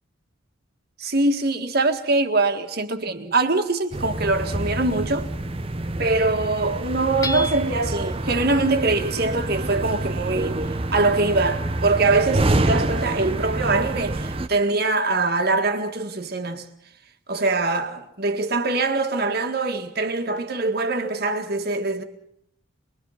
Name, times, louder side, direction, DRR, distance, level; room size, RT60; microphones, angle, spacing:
voice 1, 1.0-5.3 6.0-10.6 10.9-16.7 17.3-22.0, right 3 dB, 50° right, 1.8 m, -23 dB
sound 1, 3.9-14.5, right 2 dB, 30° right, 0.8 m, -27 dB
Hammer / Chink clink, 7.2-8.0, left 2 dB, 15° left, 0.9 m, -31 dB
24.5 x 22.0 x 5.8 m
head